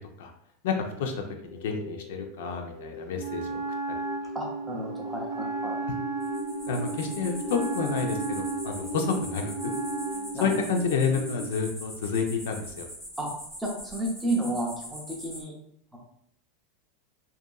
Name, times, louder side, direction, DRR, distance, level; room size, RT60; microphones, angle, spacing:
voice 1, 0.6-1.1 1.4-3.6 6.7-9.5 10.4-12.9, left 5 dB, 70° left, 4 dB, 0.4 m, -29 dB
sound 1, 1.4-11.4, equal, 40° left, 0.7 m, -39 dB
Wind instrument woodwind instrument, 3.2-10.4, right 3 dB, 70° right, 0.7 m, -34 dB
voice 2, 4.3-5.8 10.3-10.6 13.2-13.3 13.6-15.5 15.9-16.0, right 1 dB, 5° right, -2 dB, 0.5 m, -32 dB
sound 2, 6.2-15.4, equal, 10° left, 0.9 m, -42 dB
2.7 x 2.4 x 2.2 m, 0.71 s
supercardioid pair, 165°, 0 cm